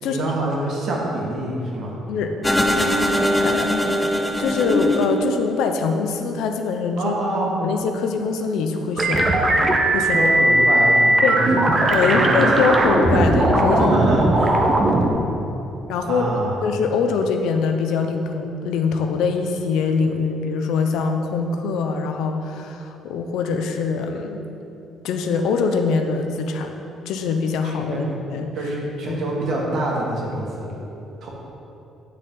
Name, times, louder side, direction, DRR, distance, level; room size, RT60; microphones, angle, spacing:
voice 1, 0.0-2.0 7.0-7.5 10.1-11.7 12.0-12.6 13.8-14.6 16.1-16.6 27.6-28.0 28.6-30.7 31.2-31.3, right 1 dB, 55° right, -3 dB, 1.8 m, -26 dB
sound 1, 2.4-5.8, left 1 dB, 10° left, 0.5 m, -21 dB
voice 2, 3.4-3.7 4.4-7.1 7.6-9.3 9.9-10.3 11.2-11.4 11.9-13.9 15.9-16.2 16.6-24.4 25.0-26.7 27.1-28.5 29.1-29.2, left 5 dB, 75° left, 5 dB, 0.7 m, -23 dB
sound 2, 9.0-15.1, right 1 dB, 20° right, 0.7 m, -18 dB
9.8 x 6.5 x 3.9 m, 2.9 s
cardioid pair, 165°, 0 cm